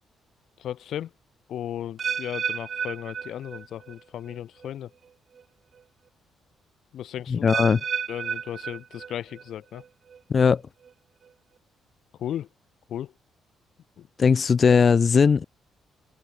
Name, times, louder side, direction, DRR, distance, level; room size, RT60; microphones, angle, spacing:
voice 1, 0.6-1.1 1.5-4.9 6.9-7.5 8.1-9.8 12.2-12.5 12.9-13.1 14.0-14.1, left 11 dB, 70° left, 3.2 m, -35 dB
sound 1, 2.0-4.0 4.3-4.7 5.4-5.5 7.5-9.4 9.7-10.2 10.8-10.9, right 7 dB, 50° right, 6.1 m, -32 dB
voice 2, 7.3-7.8 10.3-10.6 14.2-15.4, left 5 dB, 40° left, 2.5 m, -19 dB
cardioid pair, 90°, 0 cm